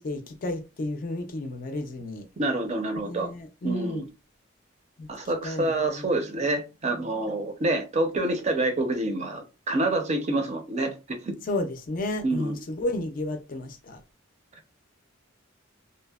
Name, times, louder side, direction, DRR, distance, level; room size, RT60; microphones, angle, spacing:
voice 1, 0.0-2.3 3.0-4.1 5.0-5.1 5.4-6.1 11.5-14.0, left 1 dB, 45° left, 0.4 m, -32 dB
voice 2, 2.4-3.3 3.6-4.0 5.1-11.4 12.2-12.6, right 2 dB, 35° right, 0.5 m, -27 dB
2.7 x 2.0 x 2.2 m
head